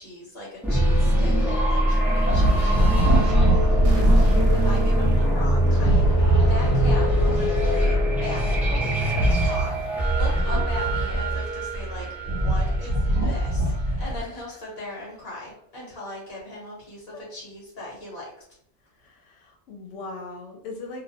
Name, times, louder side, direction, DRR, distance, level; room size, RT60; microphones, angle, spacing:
voice 1, 0.0-18.3, left 1 dB, 60° left, -4 dB, 1.0 m, -39 dB
sound 1, 0.6-13.3, right 1 dB, ahead, 0.5 m, -22 dB
sound 2, 2.3-4.6 5.7-8.1 9.1-11.4 11.9-14.3, right 1 dB, 35° right, 0.8 m, -23 dB
sound 3, 3.8-6.6, right 1 dB, 70° right, 0.9 m, -28 dB
voice 2, 4.7-5.2 10.4-10.6 13.9-14.1 17.1-17.2 19.0-21.0, left 2 dB, 85° left, 1 dB, 1.0 m, -40 dB
2.4 x 2.1 x 2.6 m, 0.71 s
omnidirectional pair, 1.2 m